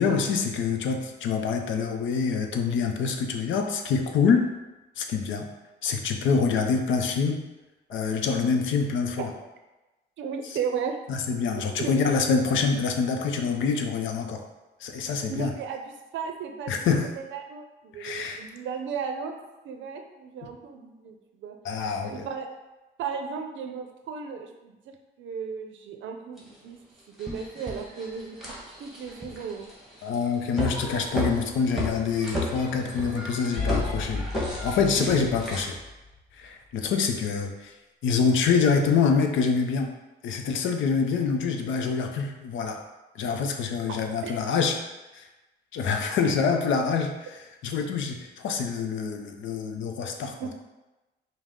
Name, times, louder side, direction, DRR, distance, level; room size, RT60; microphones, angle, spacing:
voice 1, 0.0-4.5 5.0-5.5 5.8-7.4 7.9-9.3 11.1-14.4 14.8-15.5 16.7-17.1 17.9-18.4 21.6-22.3 30.0-34.3 34.6-35.8 36.4-37.7 38.0-39.9 40.2-42.8 43.2-44.8 45.1-45.3 45.7-50.4, left 5 dB, 80° left, 5 dB, 0.5 m, -26 dB
voice 2, 10.2-11.0 11.8-11.9 15.3-19.3 19.6-21.2 21.4-21.6 22.1-22.5 23.0-24.7 25.2-26.8 27.2-28.5 28.8-29.7 44.2-44.3 50.4-50.5, right 6 dB, 75° right, 5 dB, 0.5 m, -35 dB
sound 1, 26.4-26.5 27.0-35.6, left 1 dB, ahead, 1.2 m, -33 dB
sound 2, 33.6-36.4, left 3 dB, 40° left, 0.7 m, -34 dB
5.2 x 2.0 x 3.6 m, 1.1 s
cardioid pair, 100°, 20 cm